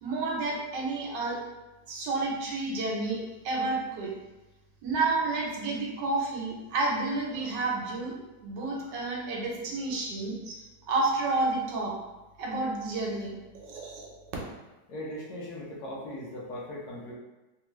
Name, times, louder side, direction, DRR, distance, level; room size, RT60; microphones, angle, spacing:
voice 1, 0.0-1.4 1.9-4.2 4.8-8.1 8.4-10.6 10.9-11.9 12.4-14.1, right 3 dB, 75° right, -2 dB, 1.4 m, -30 dB
voice 2, 14.9-17.1, left 1 dB, 70° left, -4 dB, 1.2 m, -39 dB
3.4 x 2.4 x 3.0 m, 1.1 s
omnidirectional pair, 1.9 m